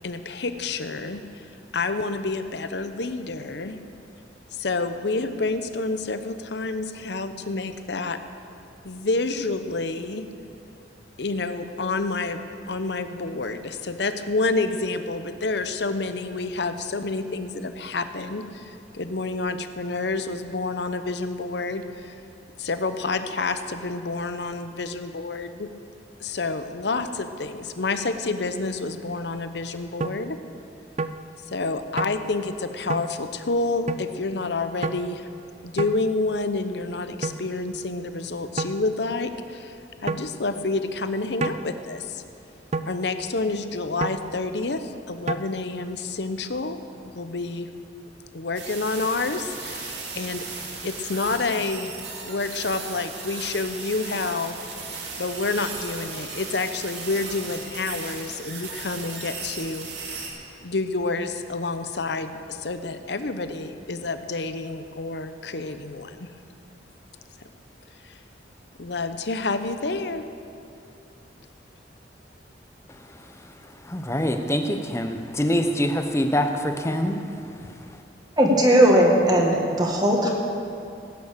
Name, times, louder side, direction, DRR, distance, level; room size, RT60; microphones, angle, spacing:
voice 1, 0.0-1.4 1.7-3.8 4.5-8.2 8.8-10.2 11.2-22.1 22.6-25.7 26.2-30.4 31.5-35.3 35.6-39.8 40.0-42.2 42.9-46.8 47.1-47.7 48.3-50.4 50.8-52.0 52.2-54.5 55.2-59.9 60.6-66.3 68.0-68.2 68.8-70.2, left 3 dB, 65° left, 9 dB, 0.8 m, -28 dB
sound 1, 30.0-30.2 31.0-31.2 32.0-32.2 32.9-33.1 33.9-34.0 34.8-35.0 35.8-36.0 37.2-37.4 38.6-38.8 40.1-40.3 41.4-41.6 42.7-42.9 44.0-44.2 45.3-45.4, right 3 dB, 35° right, 0.4 m, -28 dB
sound 2, 48.5-60.3, right 4 dB, 65° right, 2.5 m, -36 dB
voice 2, 73.9-77.2, equal, 15° left, 6 dB, 0.9 m, -24 dB
voice 3, 78.4-80.3, right 1 dB, 20° right, -1 dB, 1.9 m, -18 dB
17.5 x 9.3 x 6.8 m, 2.6 s
head